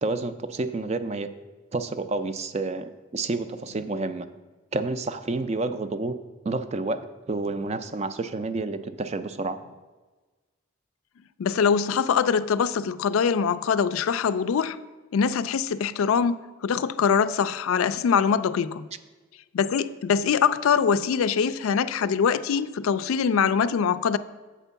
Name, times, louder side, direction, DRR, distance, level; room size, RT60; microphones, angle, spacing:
voice 1, 0.0-1.3 1.7-4.3 4.7-6.1 6.4-9.6 22.0-22.1, right 3 dB, 30° right, 0.4 m, -29 dB
voice 2, 11.4-14.8 15.1-18.8 19.5-24.2, left 6 dB, 85° left, 0.4 m, -23 dB
7.3 x 4.5 x 6.9 m
head